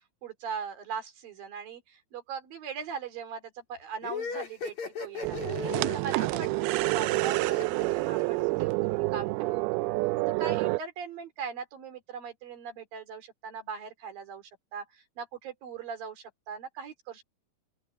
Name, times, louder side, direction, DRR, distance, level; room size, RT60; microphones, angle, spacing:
voice 1, 0.2-5.5 5.9-9.8 10.4-17.2, right 6 dB, 60° right, 4.7 m, -40 dB
sound 1, 4.0-8.6, left 5 dB, 45° left, 5.4 m, -37 dB
sound 2, 5.2-10.8, right 23 dB, 80° right, 2.3 m, -28 dB
open air
omnidirectional pair, 4.7 m